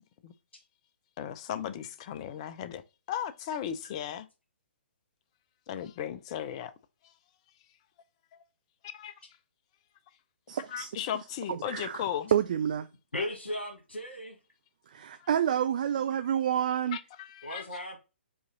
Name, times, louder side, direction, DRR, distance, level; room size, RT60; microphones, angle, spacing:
voice 1, 1.2-2.8 3.1-4.3 5.7-6.7 7.0-7.1 8.3-8.4 8.8-9.2 10.7-12.3 16.9-17.7, left 10 dB, 30° left, 0.5 m, -36 dB
voice 2, 10.5-10.9 11.5-12.0 12.3-12.9 14.9-17.0, right 9 dB, 45° right, 0.3 m, -28 dB
voice 3, 13.1-14.4 17.4-18.0, left 1 dB, 70° left, 1.6 m, -36 dB
4.8 x 3.0 x 3.7 m
figure-of-eight pair, 125°, 6 cm